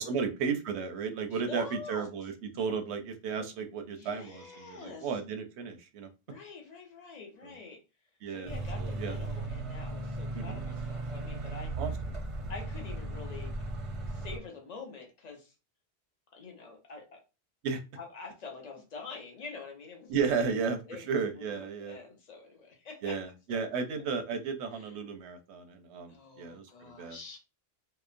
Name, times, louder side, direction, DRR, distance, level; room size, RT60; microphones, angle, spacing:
voice 1, 0.0-6.1 7.4-7.5 8.2-9.2 10.3-10.6 11.8-11.9 17.6-17.8 20.1-22.0 23.0-26.6 27.0-27.2, right 5 dB, 90° right, 6 dB, 0.9 m, -34 dB
voice 2, 1.3-2.1 3.9-5.1 6.3-7.8 8.3-11.7 12.5-13.5 14.1-15.5 16.3-17.0 18.0-21.1 21.4-23.2 23.5-23.6 24.8-24.9 26.1-27.4, left 4 dB, 45° left, 1 dB, 0.8 m, -46 dB
sound 1, 8.5-14.4, right 2 dB, 40° right, 0.5 m, -36 dB
2.9 x 2.0 x 2.5 m, 0.29 s
omnidirectional pair, 1.1 m